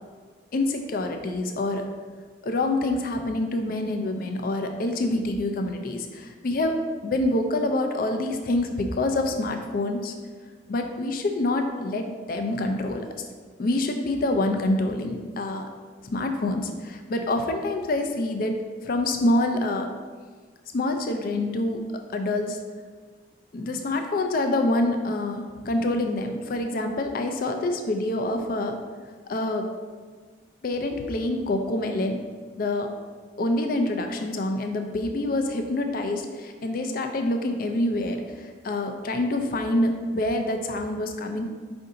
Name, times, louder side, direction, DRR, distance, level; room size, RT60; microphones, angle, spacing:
voice 1, 0.5-1.9 2.4-10.1 10.7-13.1 13.6-15.7 16.0-19.9 20.7-21.8 22.1-22.6 23.5-28.8 29.3-29.7 30.6-32.2 32.6-32.9 33.4-41.5, left 2 dB, 50° left, 5 dB, 0.4 m, -26 dB
5.4 x 2.6 x 3.7 m, 1.5 s
head